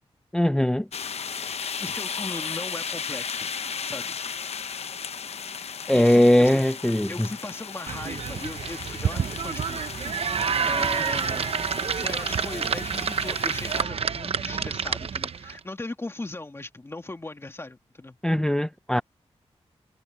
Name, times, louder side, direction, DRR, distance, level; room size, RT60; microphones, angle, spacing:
voice 1, 0.3-0.9 5.9-7.3 18.2-19.0, left 1 dB, 5° left, 0.4 m, -20 dB
sound 1, 0.9-13.8, left 6 dB, 70° left, 0.8 m, -35 dB
voice 2, 1.8-3.5 3.8-4.2 5.9-6.6 7.1-9.9 10.6-11.5 11.9-18.2, left 2 dB, 20° left, 2.5 m, -38 dB
sound 2, 7.9-15.6, right 6 dB, 60° right, 0.7 m, -28 dB
wide cardioid pair, 105°, 11 cm